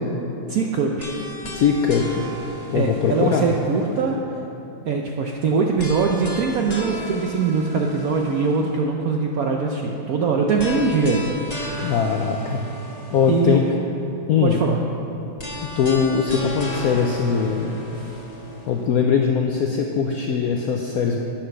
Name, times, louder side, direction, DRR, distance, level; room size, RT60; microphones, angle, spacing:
voice 1, 0.5-1.2 2.7-4.2 4.8-11.9 13.3-13.8 14.4-14.8 17.9-18.1, right 4 dB, 75° right, 1 dB, 0.8 m, -22 dB
sound 1, 1.0-4.1 5.8-8.8 10.6-13.7 15.4-18.8, equal, 30° left, 0.7 m, -35 dB
voice 2, 1.5-2.2 2.7-3.5 11.8-12.6 13.1-13.6 14.3-14.6 15.8-17.8 18.7-21.2, left 6 dB, 80° left, 1 dB, 0.8 m, -21 dB
10.0 x 5.9 x 6.3 m, 3.0 s
omnidirectional pair, 2.2 m